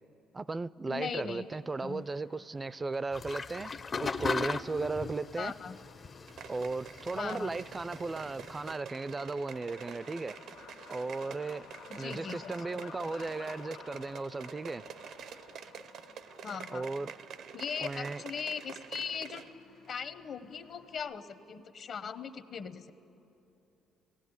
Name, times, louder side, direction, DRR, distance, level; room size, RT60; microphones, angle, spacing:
voice 1, 0.3-3.7 4.0-5.5 6.5-10.4 10.9-11.6 12.0-14.8 16.7-17.1 17.8-18.2, right 3 dB, 20° right, 0.4 m, -36 dB
voice 2, 0.8-2.0 5.4-5.8 7.1-7.6 12.0-12.4 12.7-12.8 16.4-16.9 17.5-19.4 19.9-22.9, left 6 dB, 50° left, 0.9 m, -39 dB
Truck, 1.0-21.0, left 6 dB, 80° left, 1.4 m, -55 dB
sound 1, 3.1-8.7, left 5 dB, 35° left, 0.5 m, -39 dB
sound 2, 6.3-19.6 19.8-19.9, right 7 dB, 65° right, 0.6 m, -48 dB
17.5 x 15.5 x 9.6 m
cardioid pair, 105°, 0 cm